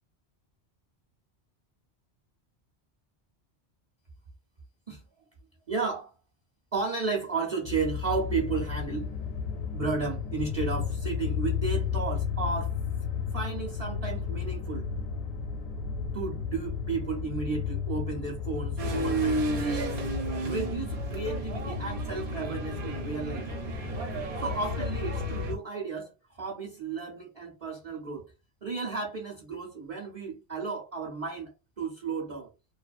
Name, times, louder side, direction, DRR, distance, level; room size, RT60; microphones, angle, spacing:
voice 1, 5.7-6.1 6.7-9.1 9.7-12.8 13.3-14.9 16.1-20.0 20.4-23.5 24.4-28.3 28.6-31.5 31.8-32.5, right 4 dB, 40° right, 0.6 m, -33 dB
sound 1, 7.7-25.6, left 6 dB, 70° left, 0.8 m, -33 dB
sound 2, 18.8-25.5, right 3 dB, 70° right, 0.9 m, -33 dB
2.3 x 2.3 x 2.3 m
omnidirectional pair, 1.1 m